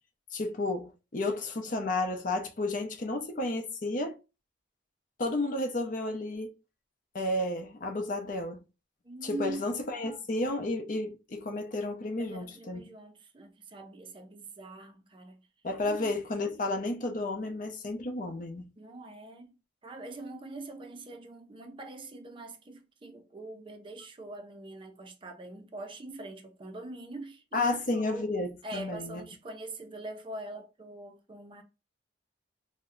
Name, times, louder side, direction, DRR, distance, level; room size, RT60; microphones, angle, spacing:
voice 1, 0.3-4.2 5.2-6.5 7.1-8.6 9.2-12.8 15.6-18.7 27.5-29.2, left 2 dB, 45° left, 0.6 m, -32 dB
voice 2, 9.0-9.6 10.0-10.1 12.1-15.4 15.8-16.1 18.8-19.6 19.8-28.3 28.6-31.6, right 2 dB, 30° right, 0.4 m, -43 dB
2.7 x 2.1 x 3.6 m
head